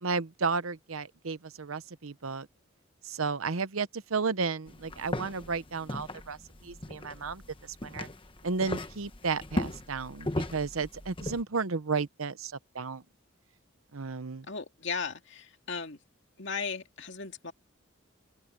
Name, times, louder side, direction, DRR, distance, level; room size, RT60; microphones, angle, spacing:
voice 1, 0.0-2.5 3.0-8.1 8.4-13.0 13.9-14.5, right 4 dB, 85° right, 0.9 m, -33 dB
sound 1, 4.7-11.4, left 1 dB, 25° left, 1.2 m, -37 dB
voice 2, 14.5-16.0 16.4-17.5, left 5 dB, 60° left, 2.4 m, -36 dB
open air
head